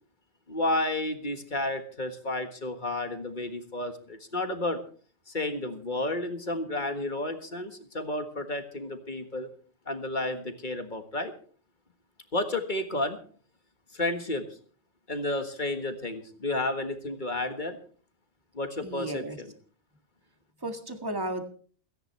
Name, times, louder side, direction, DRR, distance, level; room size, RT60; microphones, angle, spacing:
voice 1, 0.5-4.8 5.3-9.5 9.9-11.3 12.3-13.2 13.9-14.4 15.1-17.8 18.5-19.5, left 2 dB, 40° left, 7 dB, 1.7 m, -31 dB
voice 2, 18.8-19.4 20.6-21.5, right 1 dB, 15° right, 5 dB, 1.9 m, -34 dB
29.0 x 10.0 x 3.3 m, 0.44 s
omnidirectional pair, 1.3 m